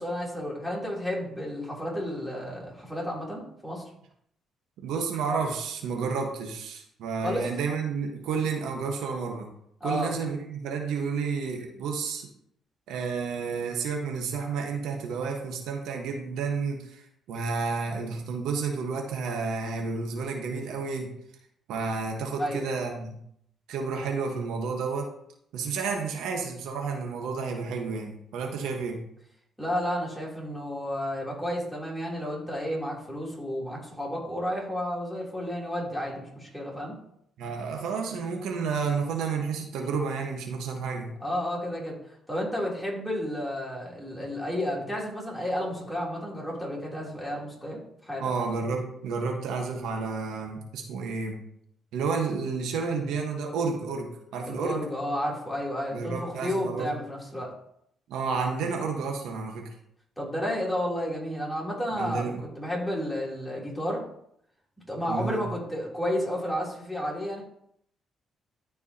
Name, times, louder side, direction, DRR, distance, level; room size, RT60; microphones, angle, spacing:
voice 1, 0.0-3.8 7.2-7.5 9.8-10.1 22.4-22.6 29.6-37.0 41.2-41.9 42.3-48.2 54.5-57.5 60.2-64.0 64.9-67.4, equal, ahead, -4 dB, 3.1 m, -31 dB
voice 2, 4.8-9.5 9.8-12.3 12.9-21.1 21.7-23.2 23.7-25.1 25.5-29.0 37.4-41.1 48.2-51.4 51.9-54.8 55.9-57.0 58.1-59.7 62.0-62.4 65.1-65.4, right 5 dB, 85° right, 2 dB, 1.2 m, -31 dB
12.5 x 4.7 x 2.8 m, 0.71 s
cardioid pair, 90°, 0 cm